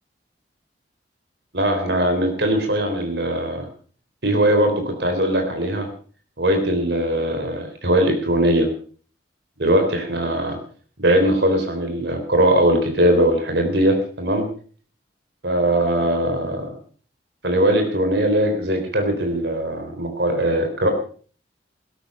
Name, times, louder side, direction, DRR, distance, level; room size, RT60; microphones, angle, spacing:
voice 1, 1.5-3.7 4.2-5.9 6.4-8.7 9.6-10.6 11.0-14.5 15.4-16.7 17.4-20.9, right 1 dB, 65° right, 5 dB, 3.9 m, -20 dB
16.5 x 14.0 x 5.5 m, 0.43 s
head